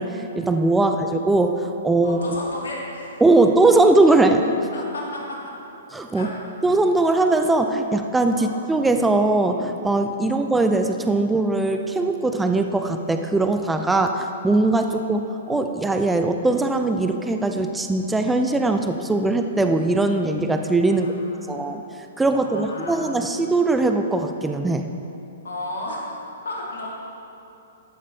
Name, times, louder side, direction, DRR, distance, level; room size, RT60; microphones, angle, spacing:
voice 1, 0.0-2.2 3.2-4.5 5.9-6.3 6.6-21.2 21.5-21.8 22.2-24.9, right 2 dB, 5° right, 6 dB, 0.5 m, -20 dB
voice 2, 2.0-3.2 4.7-5.4 6.1-6.3 8.4-8.5 10.3-10.4 14.9-15.0 20.9-21.7 22.3-23.1 25.4-26.0 26.4-26.9, left 2 dB, 80° left, -3 dB, 2.0 m, -34 dB
13.5 x 5.3 x 4.1 m, 2.8 s
hypercardioid pair, 130°, 0 cm